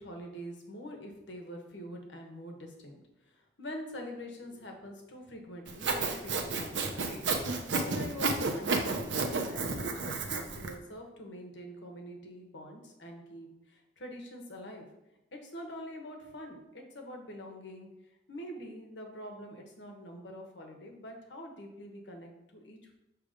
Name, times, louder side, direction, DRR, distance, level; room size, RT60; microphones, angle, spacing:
voice 1, 0.0-7.4 7.8-14.9 15.3-17.9 18.3-22.9, equal, 80° left, 2 dB, 1.2 m, -45 dB
Sawing, 5.7-10.7, right 3 dB, 85° right, 0.8 m, -31 dB
6.7 x 3.3 x 5.0 m, 0.90 s
head